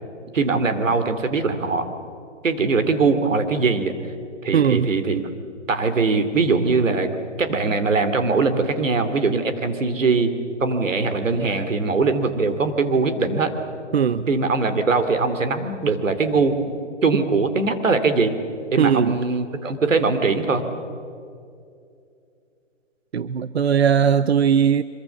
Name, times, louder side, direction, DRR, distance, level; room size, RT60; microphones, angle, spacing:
voice 1, 0.3-1.8 2.4-3.9 4.4-5.3 5.7-7.1 7.4-10.3 10.6-13.5 14.3-18.4 18.7-20.6, right 4 dB, 85° right, 3.1 m, -21 dB
voice 2, 4.5-4.9 13.9-14.3 18.8-19.2 23.1-24.8, right 7 dB, 55° right, 0.7 m, -19 dB
25.0 x 23.0 x 7.3 m
hypercardioid pair, 175°, 38 cm